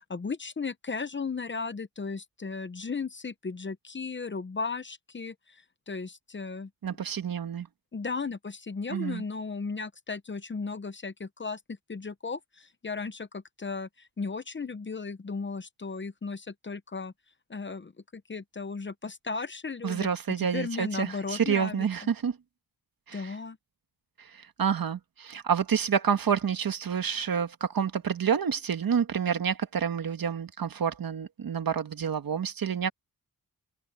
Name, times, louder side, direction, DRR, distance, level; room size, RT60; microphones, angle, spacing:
voice 1, 0.1-6.7 7.9-17.1 17.5-20.1 20.4-21.9 23.1-23.6, left 4 dB, 30° left, 0.8 m, -36 dB
voice 2, 6.8-7.7 8.9-9.2 19.8-22.4 23.1-23.3 24.2-32.9, right 7 dB, 65° right, 1.5 m, -28 dB
wide cardioid pair, 120°, 38 cm